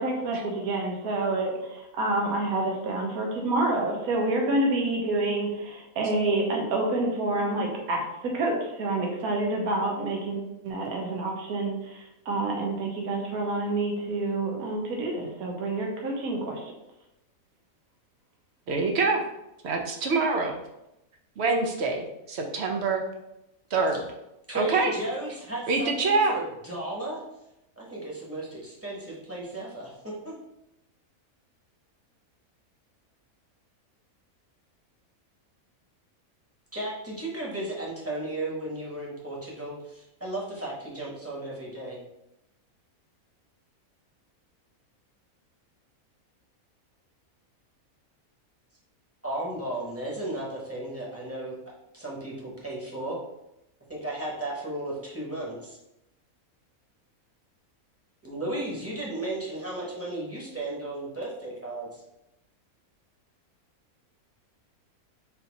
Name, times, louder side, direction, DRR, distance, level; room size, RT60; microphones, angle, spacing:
voice 1, 0.0-16.6, right 2 dB, 80° right, 0 dB, 1.3 m, -28 dB
voice 2, 18.7-19.2 19.6-20.6 21.4-23.0 23.7-24.0 24.5-24.9 25.7-26.3, right 3 dB, 60° right, 2 dB, 0.7 m, -25 dB
voice 3, 24.5-27.2 27.8-29.9 36.7-42.0 49.2-51.6 51.9-53.2 53.9-55.8 58.2-62.0, right 1 dB, 10° right, -5 dB, 1.0 m, -34 dB
4.1 x 2.7 x 4.0 m, 0.88 s
omnidirectional pair, 1.5 m